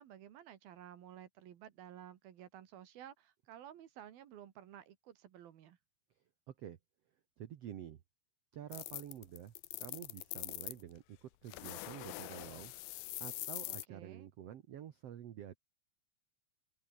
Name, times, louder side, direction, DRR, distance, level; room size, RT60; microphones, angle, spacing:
voice 1, 0.0-5.8 13.7-14.3, right 10 dB, 75° right, 3.6 m, -54 dB
voice 2, 6.5-6.8 7.4-8.0 8.5-12.7 13.2-15.6, right 10 dB, 60° right, 1.8 m, -49 dB
sound 1, 8.7-10.8 11.5-13.9, left 18 dB, 80° left, 2.6 m, -44 dB
omnidirectional pair, 4.3 m